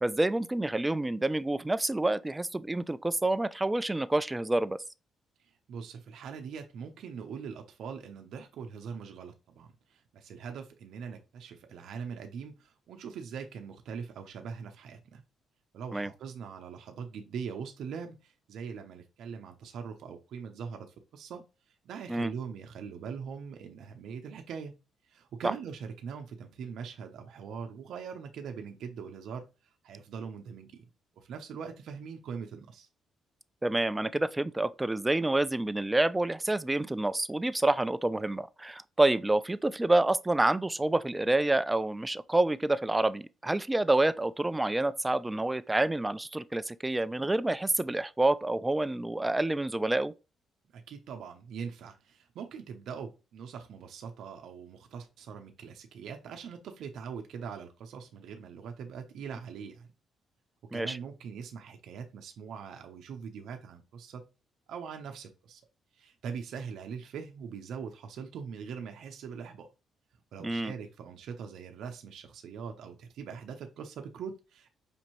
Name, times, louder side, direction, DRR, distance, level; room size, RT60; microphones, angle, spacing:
voice 1, 0.0-4.8 15.9-16.1 22.1-22.3 25.4-25.5 33.6-50.1 60.7-61.0 70.4-70.7, right 2 dB, 15° right, 0.3 m, -28 dB
voice 2, 5.4-15.2 15.7-24.7 25.1-29.4 29.8-30.9 31.2-32.9 50.7-59.9 60.7-64.3 64.7-65.6 65.9-69.7 70.3-74.7, right 6 dB, 75° right, 0.6 m, -42 dB
5.1 x 2.7 x 3.0 m
cardioid pair, 90°, 0 cm